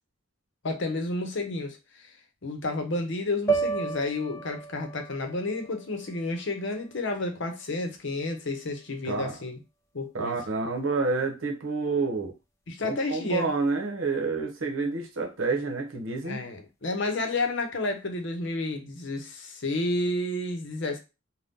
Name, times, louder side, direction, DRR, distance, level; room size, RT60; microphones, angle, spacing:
voice 1, 0.6-2.1 2.4-9.6 9.9-10.4 12.7-13.5 16.2-21.0, left 2 dB, 60° left, 0.7 m, -31 dB
sound 1, 3.5-7.7, right 5 dB, 15° left, 0.5 m, -33 dB
voice 2, 9.0-9.3 10.1-12.3 12.8-16.4, right 3 dB, 75° right, 0.8 m, -29 dB
2.6 x 2.2 x 3.5 m
head